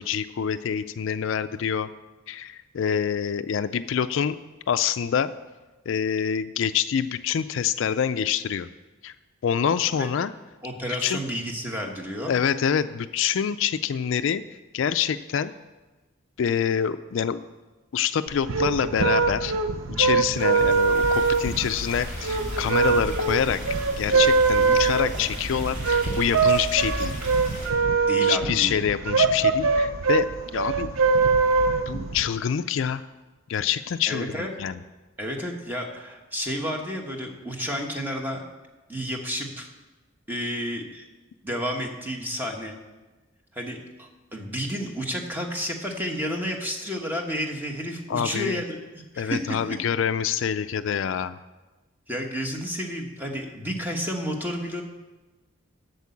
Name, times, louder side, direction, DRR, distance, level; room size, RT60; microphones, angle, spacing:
voice 1, 0.0-1.9 2.3-4.4 4.7-5.3 5.9-8.7 9.0-9.1 9.4-10.3 11.0-11.2 12.3-14.4 14.7-15.5 16.4-17.4 17.9-19.5 19.9-23.6 24.0-27.1 28.2-30.9 31.9-33.0 33.5-34.8 48.1-48.6 49.2-51.4, left 8 dB, 65° left, 12 dB, 0.3 m, -26 dB
voice 2, 10.6-12.3 24.6-24.7 28.1-28.7 34.1-34.5 35.2-38.4 38.9-39.7 40.3-41.1 41.4-42.7 43.5-49.8 52.1-54.8, equal, 10° right, 2 dB, 1.2 m, -31 dB
sound 1, 18.3-32.2, right 4 dB, 75° right, 0.6 m, -23 dB
sound 2, 20.3-27.7, equal, 40° right, 2.4 m, -35 dB
8.3 x 6.8 x 8.3 m, 1.2 s
head